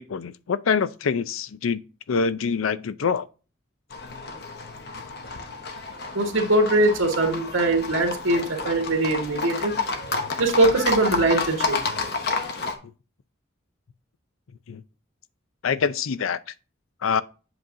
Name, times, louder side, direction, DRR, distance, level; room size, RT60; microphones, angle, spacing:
voice 1, 0.0-1.8 2.1-3.3 14.7-14.8 15.6-16.4 17.0-17.2, left 6 dB, 85° left, 0.5 m, -25 dB
Livestock farm animals working animals, 3.9-12.8, left 3 dB, 55° left, 1.0 m, -30 dB
voice 2, 6.1-9.7 10.4-11.8, right 2 dB, 90° right, 1.6 m, -21 dB
7.9 x 5.4 x 2.6 m
head